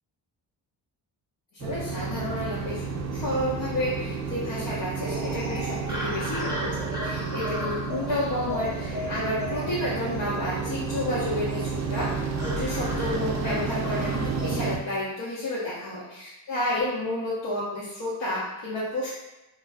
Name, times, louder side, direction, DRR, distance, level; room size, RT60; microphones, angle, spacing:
voice 1, 1.5-2.8 3.1-19.1, left 1 dB, 60° left, -8 dB, 0.8 m, -31 dB
sound 1, 1.6-14.8, right 4 dB, 35° right, 0.4 m, -31 dB
sound 2, 5.0-14.7, equal, 10° right, 1.0 m, -37 dB
2.3 x 2.1 x 3.4 m, 1.0 s
supercardioid pair, 50°, 48 cm